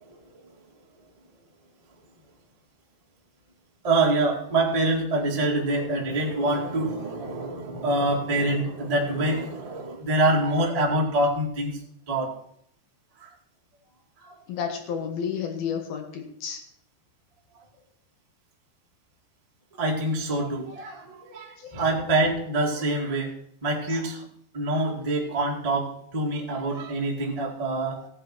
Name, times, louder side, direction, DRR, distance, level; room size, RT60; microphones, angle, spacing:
voice 1, 3.8-11.8 12.1-12.3 13.2-13.3 14.2-14.3 19.8-23.3 23.6-24.2 24.5-28.1, right 2 dB, 70° right, -2 dB, 0.3 m, -25 dB
voice 2, 14.5-16.6 23.9-24.0, left 7 dB, 65° left, 4 dB, 3.0 m, -31 dB
17.0 x 7.5 x 4.5 m, 0.67 s
omnidirectional pair, 5.0 m